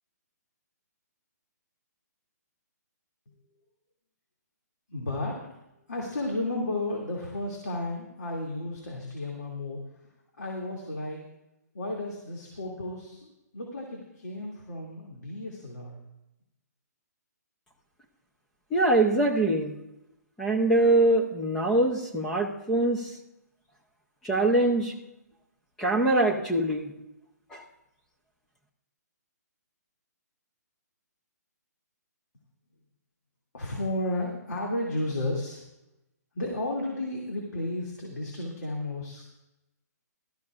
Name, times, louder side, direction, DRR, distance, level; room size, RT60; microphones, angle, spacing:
voice 1, 4.9-5.5 5.9-10.1 10.4-11.2 11.7-16.0 33.5-35.6 36.3-39.2, left 1 dB, 80° left, -2 dB, 2.5 m, -33 dB
voice 2, 18.7-19.7 20.4-23.1 24.2-25.0 25.8-26.9 27.5-27.6, right 2 dB, 5° left, 0 dB, 0.5 m, -23 dB
18.0 x 13.0 x 2.5 m, 0.91 s
hypercardioid pair, 175°, 9 cm